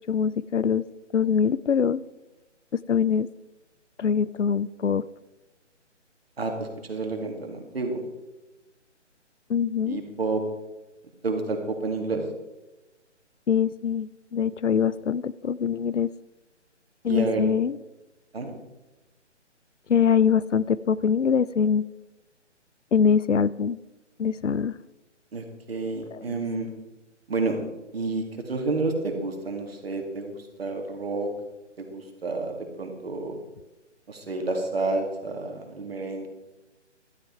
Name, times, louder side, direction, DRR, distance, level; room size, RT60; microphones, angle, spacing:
voice 1, 0.1-0.8 1.1-2.0 2.7-3.3 4.0-5.0 9.5-10.0 13.5-16.1 17.0-17.8 19.9-21.9 22.9-23.8 24.2-24.7 26.1-26.4, left 7 dB, 75° left, 19 dB, 0.6 m, -23 dB
voice 2, 6.4-8.0 9.8-10.4 11.2-12.2 17.1-17.4 18.3-18.5 25.3-26.7 27.3-27.6 27.9-31.3 31.8-33.4 34.1-36.3, right 3 dB, 55° right, 4 dB, 2.3 m, -30 dB
12.0 x 10.5 x 4.6 m, 1.1 s
figure-of-eight pair, 145°, 36 cm